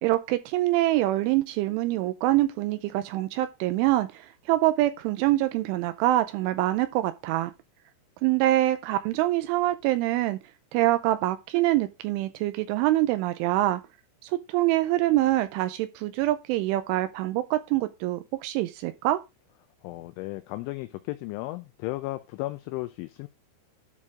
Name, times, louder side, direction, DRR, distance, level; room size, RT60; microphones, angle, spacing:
voice 1, 0.0-7.5 8.2-10.4 10.7-13.8 14.2-19.2, right 15 dB, 85° right, 2.9 m, -25 dB
voice 2, 19.8-23.3, left 19 dB, 80° left, 2.8 m, -35 dB
12.5 x 4.3 x 4.9 m
omnidirectional pair, 5.9 m